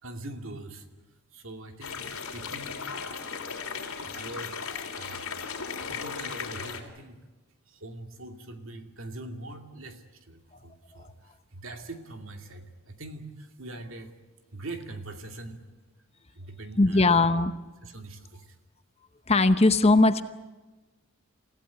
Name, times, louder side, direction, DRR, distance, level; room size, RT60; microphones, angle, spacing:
voice 1, 0.0-0.9 1.3-2.9 3.8-4.6 4.9-5.3 5.9-7.2 7.7-14.1 14.5-15.6 16.3-17.3 17.8-18.6, right 2 dB, 60° right, 5 dB, 2.5 m, -42 dB
sound 1, 1.8-6.8, left 6 dB, 75° left, 3.4 m, -36 dB
voice 2, 16.8-17.5 19.3-20.2, left 2 dB, 30° left, 11 dB, 0.8 m, -19 dB
28.5 x 16.0 x 9.3 m, 1.2 s
head